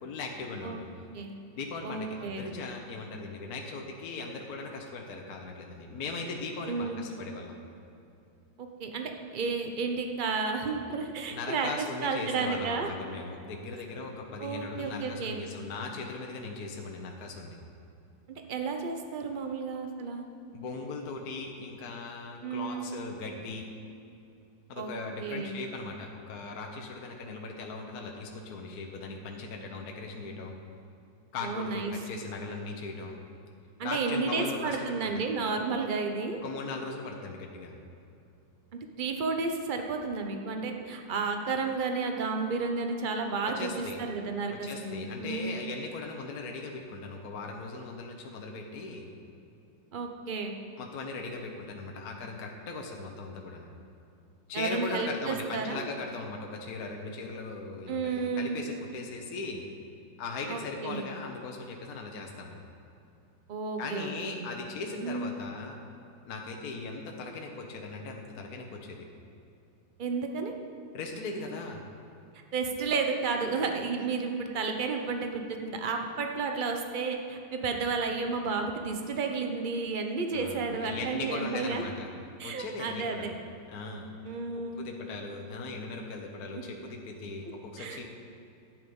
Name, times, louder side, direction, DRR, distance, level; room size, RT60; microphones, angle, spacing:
voice 1, 0.0-0.9 1.5-7.5 11.3-17.6 20.5-23.7 24.7-30.6 31.3-33.2 33.8-35.1 36.4-37.7 43.4-44.0 44.6-49.1 50.8-53.7 54.5-59.6 60.2-62.6 63.8-65.8 66.2-69.1 70.9-71.8 80.3-82.1 82.4-83.3 83.7-84.1 84.5-88.1, left 3 dB, 55° left, 1 dB, 1.4 m, -39 dB
voice 2, 1.8-2.5 6.7-7.0 8.6-12.9 14.4-15.4 18.3-20.2 22.4-22.9 24.8-24.9 25.2-25.6 31.4-31.9 33.8-36.4 39.0-45.6 49.9-50.6 54.5-55.9 57.9-58.6 60.5-61.0 63.5-64.1 64.4-64.5 65.0-65.3 70.0-70.5 72.5-81.8 82.4-83.3 84.2-84.8 86.5-86.6 87.8-88.0, right 4 dB, 45° right, 4 dB, 0.6 m, -32 dB
11.5 x 9.3 x 5.4 m, 2.7 s
omnidirectional pair, 2.1 m